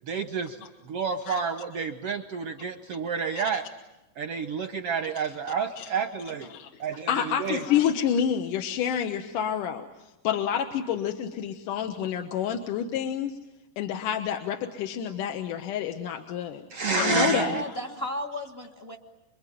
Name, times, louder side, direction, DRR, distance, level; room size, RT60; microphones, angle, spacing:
voice 1, 0.0-0.6 0.8-3.7 4.2-6.5 6.8-7.6 16.7-17.6, right 5 dB, 65° right, 7 dB, 1.6 m, -29 dB
voice 2, 7.1-9.9 10.2-13.4 13.8-16.6 17.0-17.6, left 9 dB, 70° left, 5 dB, 2.7 m, -28 dB
voice 3, 16.9-19.0, left 1 dB, 30° left, 2 dB, 1.1 m, -34 dB
27.0 x 23.5 x 9.3 m, 0.97 s
omnidirectional pair, 4.0 m